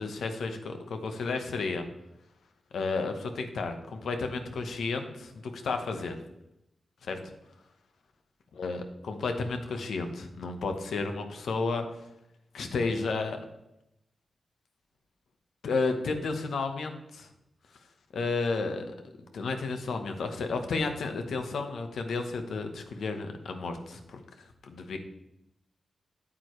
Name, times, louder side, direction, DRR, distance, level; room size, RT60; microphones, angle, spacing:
voice 1, 0.0-1.8 2.7-6.1 7.0-7.2 8.6-11.8 12.5-13.4 15.6-17.3 18.1-18.9 19.3-25.0, left 3 dB, 85° left, 6 dB, 1.1 m, -32 dB
9.0 x 8.6 x 3.2 m, 0.85 s
wide cardioid pair, 155°, 0 cm